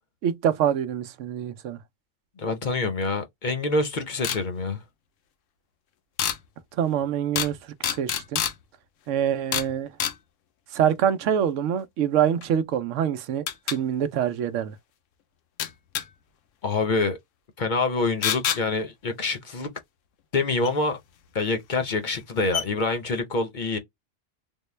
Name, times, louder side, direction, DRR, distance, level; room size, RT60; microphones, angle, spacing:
voice 1, 0.2-1.8 6.8-8.4 9.1-9.9 10.7-14.8, right 9 dB, 80° right, 0.9 m, -25 dB
voice 2, 2.4-4.8 16.6-17.2 17.6-19.7 20.3-21.0 21.3-23.8, left 3 dB, 45° left, 0.7 m, -26 dB
sound 1, 4.2-4.4 6.2-6.4 7.3-7.5 7.8-8.5 9.5-9.7 10.0-10.2 12.4-12.5 13.5-13.8 15.6-16.0 18.2-18.6 20.6-20.7 21.7-21.8 22.2-22.3 22.5-22.6, left 9 dB, 85° left, 1.0 m, -26 dB
3.6 x 2.1 x 3.2 m
omnidirectional pair, 1.3 m